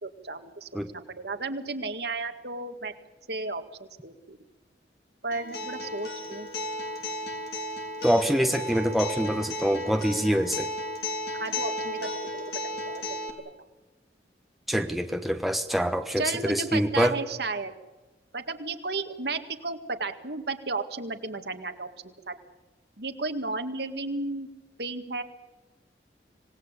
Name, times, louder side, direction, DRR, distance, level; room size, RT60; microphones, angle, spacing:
voice 1, 0.0-2.9 3.3-4.4 5.2-6.5 11.3-12.4 12.8-13.2 16.2-17.7 18.3-22.3 23.0-24.5 24.8-25.2, right 3 dB, 65° right, 7 dB, 2.0 m, -33 dB
Acoustic guitar, 5.3-13.3, left 1 dB, 60° left, 3.6 m, -34 dB
voice 2, 8.0-10.7 14.7-17.2, equal, ahead, 6 dB, 1.1 m, -25 dB
26.0 x 18.5 x 8.3 m, 1.1 s
head